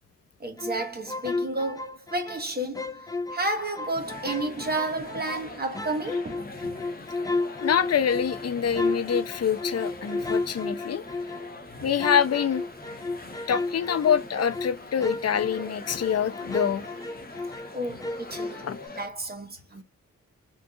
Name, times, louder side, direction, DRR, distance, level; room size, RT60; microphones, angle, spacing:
voice 1, 0.4-6.5 16.8-17.1 17.7-18.7 19.0-19.8, right 2 dB, 30° right, 1.2 m, -32 dB
sound 1, 0.6-2.4 2.7-5.5 5.7-11.6 12.0-17.7 18.0-18.9, left 3 dB, 10° left, 0.5 m, -33 dB
sound 2, 3.8-19.1, left 2 dB, 30° left, 0.9 m, -43 dB
voice 2, 7.6-11.0 11.8-12.6 13.5-16.9 18.6-18.8, left 8 dB, 55° left, 0.6 m, -25 dB
3.7 x 2.6 x 2.3 m
cardioid pair, 60°, 31 cm